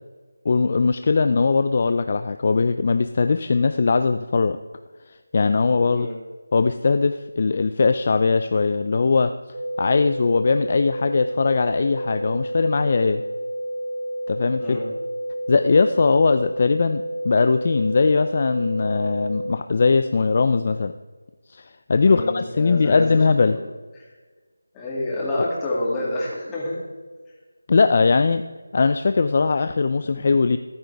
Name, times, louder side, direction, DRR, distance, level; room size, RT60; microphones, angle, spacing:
voice 1, 0.5-4.6 5.3-6.1 6.5-9.3 9.8-13.2 14.3-14.8 15.5-20.9 21.5-23.6 27.7-28.4 28.7-30.6, left 4 dB, 35° left, 9 dB, 0.4 m, -20 dB
sound 1, 9.5-19.5, right 1 dB, 65° right, 1.3 m, -30 dB
voice 2, 22.0-23.2 23.5-23.6 24.0-24.1 24.7-26.8, left 1 dB, 10° left, -6 dB, 2.5 m, -28 dB
14.0 x 11.5 x 3.4 m, 1.4 s
figure-of-eight pair, 170°, 0 cm